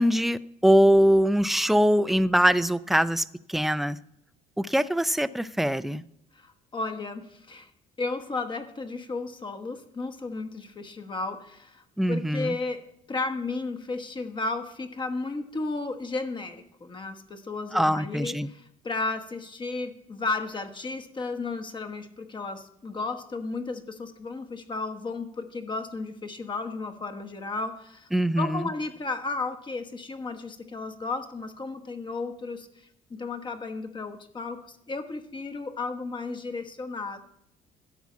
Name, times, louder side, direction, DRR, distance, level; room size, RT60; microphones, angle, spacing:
voice 1, 0.0-4.0 4.6-6.0 12.0-12.5 17.7-18.5 28.1-28.6, equal, ahead, 15 dB, 0.3 m, -22 dB
voice 2, 6.3-7.7 8.0-28.1 28.4-37.2, left 3 dB, 30° left, 8 dB, 1.1 m, -34 dB
12.5 x 4.8 x 8.2 m, 0.77 s
cardioid pair, 110°, 17 cm